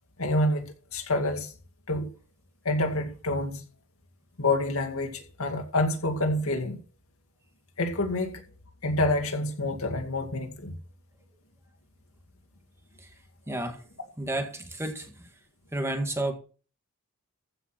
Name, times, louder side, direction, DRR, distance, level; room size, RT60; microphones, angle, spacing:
voice 1, 0.2-1.5 1.9-2.1 2.6-3.6 4.4-6.8 7.8-8.4 8.8-10.7, left 2 dB, 75° left, 2.2 m, -27 dB
voice 2, 13.5-13.8 14.2-15.1 15.7-16.3, right 1 dB, 10° right, 2.0 m, -31 dB
15.0 x 6.0 x 5.9 m
head